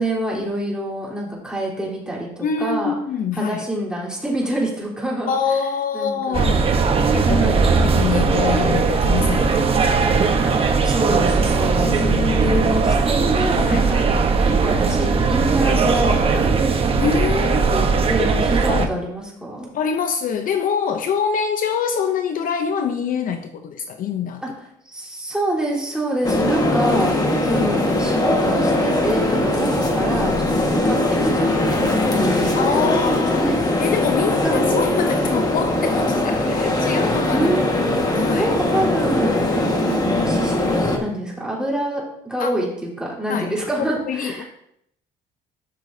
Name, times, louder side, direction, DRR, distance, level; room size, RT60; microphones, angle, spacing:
voice 1, 0.0-3.0 3.3-5.6 5.9-6.6 7.2-7.7 10.4-10.5 10.8-14.0 14.4-16.5 17.7-19.7 24.4-24.5 24.8-33.6 34.4-34.7 36.4-36.5 37.3-37.7 38.4-44.5, right 1 dB, 5° right, -4 dB, 3.5 m, -26 dB
voice 2, 2.4-3.7 5.3-6.7 7.1-9.8 11.6-12.6 13.6-13.9 17.0-17.9 18.7-19.0 19.7-24.4 26.8-27.6 32.5-33.5 33.8-37.5 38.1-38.5 39.5-39.7 42.4-42.5 43.3-43.5 43.9-44.5, left 6 dB, 55° left, 7 dB, 0.6 m, -25 dB
sound 1, 6.3-18.9, right 4 dB, 35° right, 1.0 m, -18 dB
sound 2, 26.2-41.0, left 1 dB, 25° left, 1.5 m, -20 dB
12.5 x 6.2 x 2.7 m, 0.75 s
cardioid pair, 110°, 17 cm